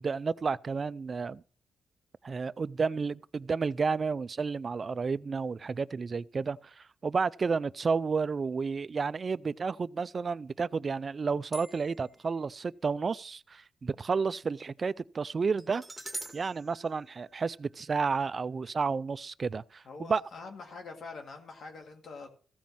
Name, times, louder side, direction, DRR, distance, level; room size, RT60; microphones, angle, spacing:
voice 1, 0.0-1.4 2.2-15.8 16.3-20.2, right 5 dB, 35° right, 0.4 m, -31 dB
sound 1, 11.5-12.2 15.6-17.8, right 2 dB, 10° right, 2.1 m, -45 dB
voice 2, 19.8-22.3, left 4 dB, 65° left, 2.1 m, -45 dB
15.5 x 5.2 x 7.3 m
wide cardioid pair, 130°, 0 cm